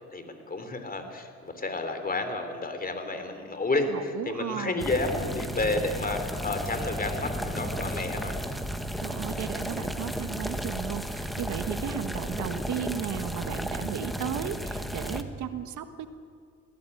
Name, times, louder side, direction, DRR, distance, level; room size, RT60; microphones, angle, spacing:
voice 1, 0.1-8.4, left 2 dB, 30° left, 7 dB, 3.5 m, -31 dB
voice 2, 3.9-4.9 9.0-16.1, right 9 dB, 75° right, 9 dB, 1.4 m, -35 dB
sound 1, 4.8-15.2, equal, ahead, 1.6 m, -33 dB
21.5 x 17.0 x 9.8 m, 2.2 s
cardioid pair, 90°, 30 cm